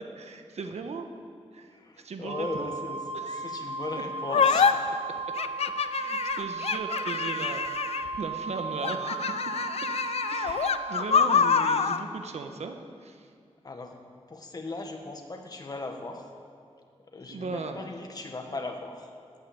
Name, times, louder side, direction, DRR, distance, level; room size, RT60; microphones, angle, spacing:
voice 1, 0.1-1.1 1.5-2.7 3.1-3.6 5.9-9.2 10.3-12.8 13.0-13.3 17.2-17.9, right 4 dB, 80° right, 6 dB, 1.3 m, -38 dB
voice 2, 1.7-3.0 3.3-4.7 13.6-13.9 14.3-16.3 17.1-19.1, left 3 dB, 35° left, 3 dB, 1.6 m, -38 dB
Wind instrument woodwind instrument, 2.3-11.2, right 4 dB, 65° right, 0.6 m, -36 dB
sound 1, 4.3-4.7 5.4-8.2 8.8-12.0, left 6 dB, 70° left, 0.6 m, -25 dB
17.5 x 9.1 x 8.7 m, 2.2 s
wide cardioid pair, 170°, 11 cm